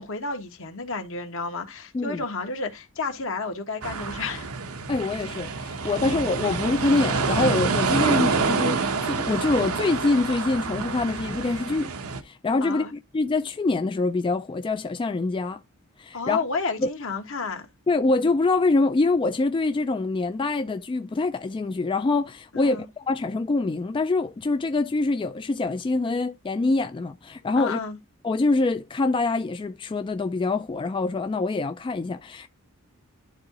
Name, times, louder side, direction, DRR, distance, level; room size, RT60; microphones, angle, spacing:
voice 1, 0.0-4.5 5.7-5.9 12.6-12.9 16.1-17.7 22.5-22.9 27.6-28.0, left 4 dB, 65° left, 1.5 m, -31 dB
sound 1, 3.8-12.2, right 4 dB, 85° right, 0.9 m, -27 dB
voice 2, 4.9-11.9 12.2-15.6 16.0-16.4 16.8-16.9 17.9-27.8 28.2-32.5, left 3 dB, 25° left, 0.3 m, -25 dB
11.0 x 3.8 x 2.9 m
head